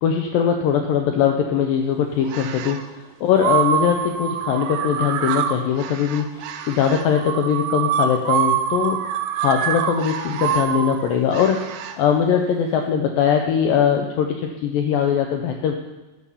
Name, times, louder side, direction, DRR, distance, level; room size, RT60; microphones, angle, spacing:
voice 1, 0.0-2.8 3.2-9.0 9.3-11.6 12.0-15.7, left 8 dB, 85° left, 4 dB, 2.0 m, -21 dB
sound 1, 2.2-2.8 3.4-12.0, right 8 dB, 80° right, 2.6 m, -25 dB
11.0 x 5.5 x 6.9 m, 1.1 s
omnidirectional pair, 4.8 m